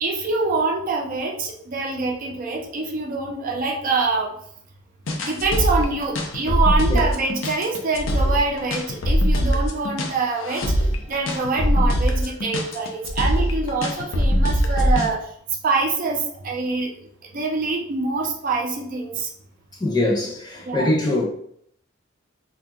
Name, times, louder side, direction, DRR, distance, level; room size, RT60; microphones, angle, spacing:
voice 1, 0.0-4.3 5.2-15.3 15.6-16.9 17.3-19.3 20.6-20.9, right 3 dB, 45° right, 0.5 m, -25 dB
sound 1, 5.1-15.1, equal, 80° left, 0.6 m, -22 dB
voice 2, 19.8-21.2, left 2 dB, 20° left, 0.8 m, -22 dB
2.7 x 2.2 x 3.5 m
head